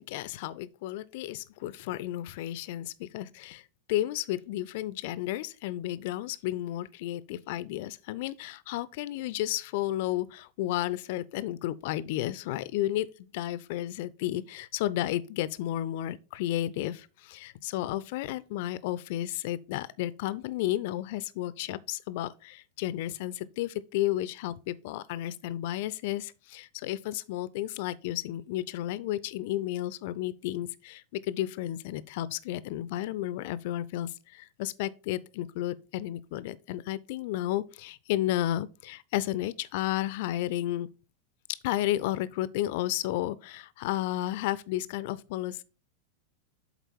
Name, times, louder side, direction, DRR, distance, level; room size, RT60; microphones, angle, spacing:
voice 1, 0.0-3.6 3.9-40.9 41.6-45.6, left 14 dB, 50° left, 0.4 m, -32 dB
7.9 x 4.0 x 4.4 m
figure-of-eight pair, 90°, 0 cm